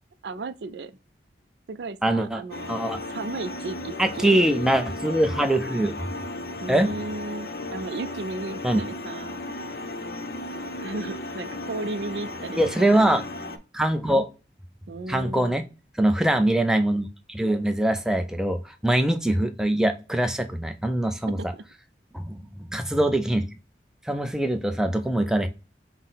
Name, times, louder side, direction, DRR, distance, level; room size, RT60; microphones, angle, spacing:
voice 1, 0.2-0.9 1.7-2.8 3.1-4.4 6.6-9.4 10.8-12.9 14.9-15.6 21.4-21.6, right 3 dB, 70° right, 0.4 m, -35 dB
voice 2, 2.0-2.4 2.7-3.0 4.0-6.0 6.7-6.9 8.6-8.8 12.6-13.2 13.7-14.3 15.1-15.6 16.0-21.4 22.1-23.5 24.1-25.5, right 1 dB, 5° right, 0.4 m, -23 dB
sound 1, 2.5-13.6, left 2 dB, 55° left, 0.6 m, -35 dB
5.7 x 2.1 x 3.9 m
head